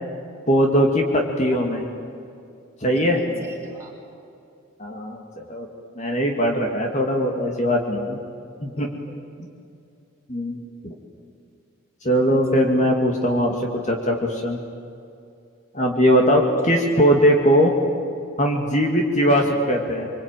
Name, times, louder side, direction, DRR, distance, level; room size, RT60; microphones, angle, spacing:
voice 1, 0.5-1.8 2.8-3.2 4.8-5.2 5.5-5.7 6.0-8.2 8.6-8.9 10.3-10.9 12.0-14.6 15.7-17.7 18.4-20.1, equal, 35° left, 1 dB, 2.4 m, -20 dB
voice 2, 2.9-3.9 8.8-9.2 16.4-16.5 17.0-17.1 19.2-19.5, right 2 dB, 15° right, -2 dB, 5.2 m, -41 dB
25.5 x 24.5 x 9.2 m, 2.5 s
head